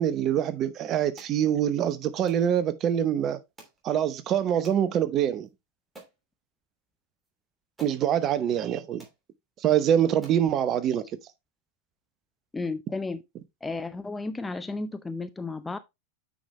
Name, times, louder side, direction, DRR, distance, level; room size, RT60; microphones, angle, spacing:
voice 1, 0.0-3.4 3.8-5.5 7.8-9.1 9.6-11.0, right 10 dB, 30° right, 0.9 m, -25 dB
sound 1, 1.2-1.4 2.3-2.5 3.6-3.8 4.6-4.8 5.4-5.5 5.9-6.2 7.2-7.3 7.8-8.0 8.7-8.8 9.0-9.2 9.8-9.9 10.2-10.5, right 2 dB, 10° right, 3.1 m, -50 dB
voice 2, 12.5-13.2 13.6-15.8, left 3 dB, 10° left, 0.5 m, -33 dB
8.9 x 5.2 x 3.2 m
figure-of-eight pair, 90°, 0 cm